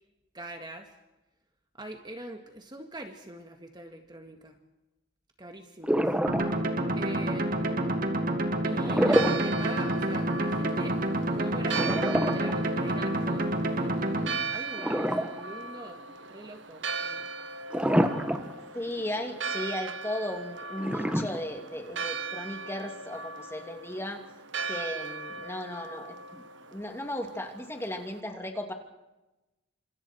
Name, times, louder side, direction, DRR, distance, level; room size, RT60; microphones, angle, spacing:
voice 1, 0.3-0.9 1.7-4.6 5.4-6.1 7.0-7.9 8.6-11.0 11.3-11.9 12.1-17.3, right 1 dB, 20° right, 4 dB, 1.8 m, -43 dB
sound 1, 5.8-6.8 8.7-9.6 9.9-10.0 11.7-13.2 14.7-15.7 16.1-16.2 17.7-18.6 19.0-19.1 20.8-21.8, equal, 5° right, 1.5 m, -27 dB
sound 2, 6.3-14.3, right 1 dB, 45° right, 2.7 m, -28 dB
Church bell, 8.7-28.2, right 4 dB, 70° right, 1.3 m, -38 dB
voice 2, 18.6-24.2 24.6-26.4 26.7-28.7, left 1 dB, 15° left, 4 dB, 2.9 m, -36 dB
30.0 x 27.0 x 4.7 m, 1.0 s
head